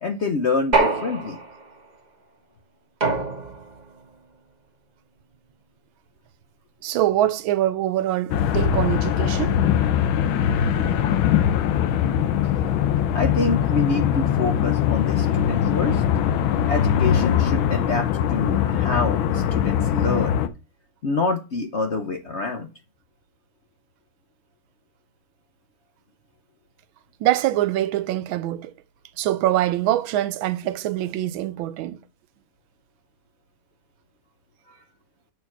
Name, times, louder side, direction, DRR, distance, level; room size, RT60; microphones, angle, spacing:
voice 1, 0.0-1.4 13.1-16.0 16.7-20.4 21.0-22.7 34.7-34.8, left 3 dB, 60° left, 0.7 m, -26 dB
sound 1, 0.7-1.7 3.0-3.8, right 3 dB, 25° right, 1.2 m, -24 dB
voice 2, 6.8-9.6 27.2-28.7 29.2-32.0, right 13 dB, 85° right, 1.4 m, -24 dB
sound 2, 8.3-20.5, left 9 dB, 85° left, 1.5 m, -21 dB
6.9 x 4.5 x 5.9 m
omnidirectional pair, 2.2 m